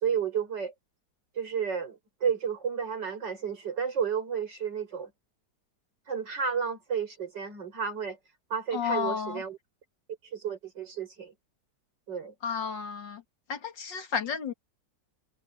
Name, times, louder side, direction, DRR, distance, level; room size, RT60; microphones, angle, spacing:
voice 1, 0.0-0.7 1.4-5.1 6.1-8.2 8.5-9.6 10.3-11.3 12.1-12.3, right 7 dB, 75° right, 5.6 m, -32 dB
voice 2, 8.7-9.4 12.4-13.2 13.5-14.5, left 6 dB, 85° left, 2.8 m, -32 dB
omnidirectional pair, 1.9 m